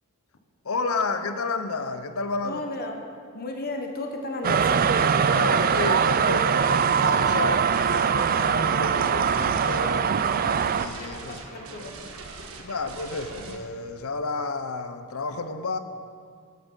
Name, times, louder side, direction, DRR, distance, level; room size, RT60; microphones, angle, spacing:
voice 1, 0.6-2.6 5.2-10.1 10.8-11.4 12.6-15.8, left 3 dB, 75° left, 0.8 m, -31 dB
voice 2, 2.4-3.0 3.3-4.8 11.0-12.0, left 2 dB, 45° left, 1.2 m, -34 dB
sound 1, 4.4-10.9, right 6 dB, 40° right, 0.4 m, -22 dB
sound 2, 6.6-13.6, right 3 dB, 75° right, 1.4 m, -41 dB
15.5 x 8.7 x 5.4 m
head